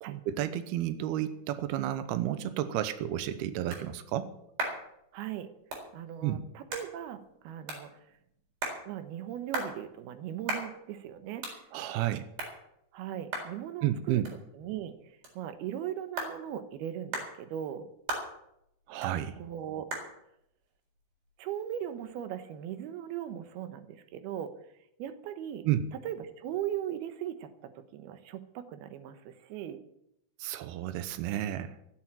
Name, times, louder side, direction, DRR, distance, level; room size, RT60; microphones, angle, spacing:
voice 1, 0.0-4.3 6.2-6.4 11.7-12.3 13.8-14.3 18.9-19.4 25.7-25.8 30.4-31.8, right 12 dB, 90° right, 11 dB, 2.2 m, -31 dB
sound 1, 2.8-22.1, right 2 dB, 45° right, 5.5 m, -42 dB
voice 2, 5.1-5.5 5.9-7.2 7.4-8.0 8.9-11.6 12.9-14.2 14.5-14.9 15.4-17.8 19.4-19.9 21.4-24.5 25.0-25.7 26.0-29.8, right 10 dB, 75° right, 10 dB, 2.5 m, -38 dB
15.0 x 8.9 x 8.8 m, 0.78 s
omnidirectional pair, 5.7 m